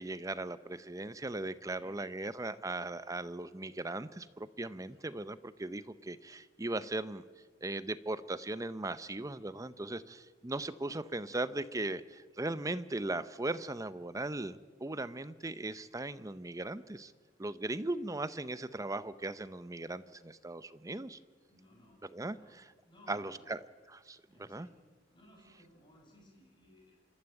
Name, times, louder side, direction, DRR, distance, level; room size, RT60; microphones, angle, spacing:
voice 1, 0.0-7.2 7.6-17.1 17.4-21.2 22.0-22.7 23.1-23.6 23.9-24.7, right 2 dB, 20° right, 14 dB, 0.7 m, -38 dB
voice 2, 1.6-2.0 21.5-22.6 22.8-23.5 24.3-24.7 25.1-27.0, left 1 dB, 25° left, -1 dB, 6.9 m, -60 dB
27.0 x 13.0 x 9.0 m, 1.5 s
head